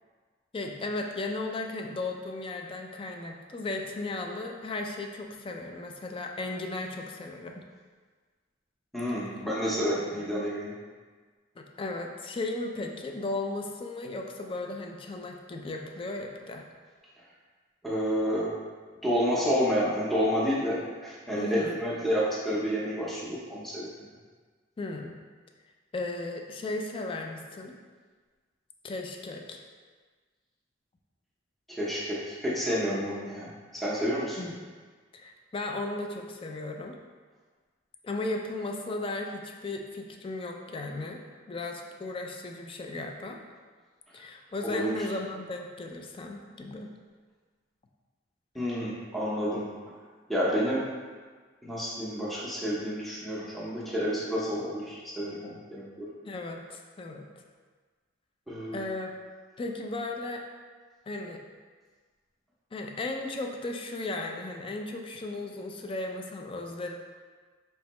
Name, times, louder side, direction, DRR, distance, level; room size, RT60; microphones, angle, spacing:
voice 1, 0.5-7.6 11.6-16.6 21.4-21.8 24.8-25.1 25.9-27.8 28.8-29.6 34.4-34.6 35.1-37.0 38.0-41.2 41.5-43.4 44.1-46.9 56.2-57.3 58.7-59.1 59.6-60.4 61.1-61.4 62.7-66.9, left 2 dB, 30° left, 3 dB, 0.3 m, -35 dB
voice 2, 8.9-10.7 17.8-18.5 19.0-23.9 31.8-34.4 44.6-44.9 48.5-49.6 50.3-50.8 51.6-56.1 58.5-58.8, equal, ahead, -7 dB, 0.7 m, -29 dB
4.4 x 3.1 x 3.0 m, 1.5 s
head